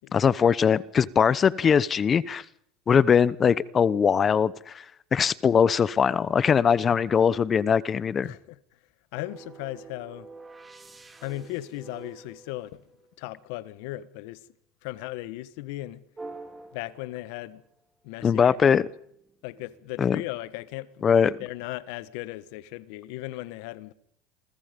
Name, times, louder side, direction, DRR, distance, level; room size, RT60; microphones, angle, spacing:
voice 1, 0.1-2.4 2.9-4.8 5.1-8.3 18.2-18.9 20.0-20.2 21.0-21.3, left 7 dB, 30° left, 0.9 m, -21 dB
voice 2, 8.2-8.6 9.1-10.3 11.2-12.8 13.2-14.4 14.8-16.0 16.7-17.6 18.0-18.9 19.4-23.9, left 17 dB, 70° left, 1.4 m, -37 dB
sound 1, 9.2-13.3 16.2-17.7 18.2-20.0, right 3 dB, 15° right, 4.8 m, -47 dB
28.0 x 23.0 x 5.3 m
supercardioid pair, 100°, 0 cm